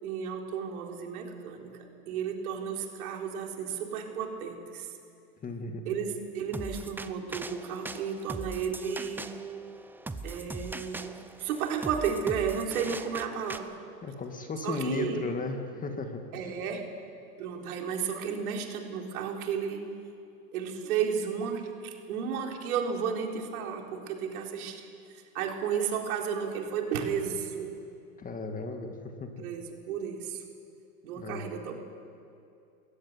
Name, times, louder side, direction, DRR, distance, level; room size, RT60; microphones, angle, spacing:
voice 1, 0.0-1.8 2.1-4.9 5.9-9.3 10.2-13.7 14.6-15.2 16.3-16.9 17.4-20.0 20.5-24.9 25.3-27.7 29.4-30.4 31.0-31.7, right 7 dB, 70° right, 2 dB, 4.0 m, -33 dB
voice 2, 5.4-5.8 14.0-16.2 28.2-29.4 31.2-31.5, left 3 dB, 20° left, 5 dB, 2.0 m, -35 dB
sound 1, 6.5-13.6, right 3 dB, 5° right, 0.6 m, -40 dB
21.5 x 16.0 x 9.6 m, 2.5 s
hypercardioid pair, 130°, 45 cm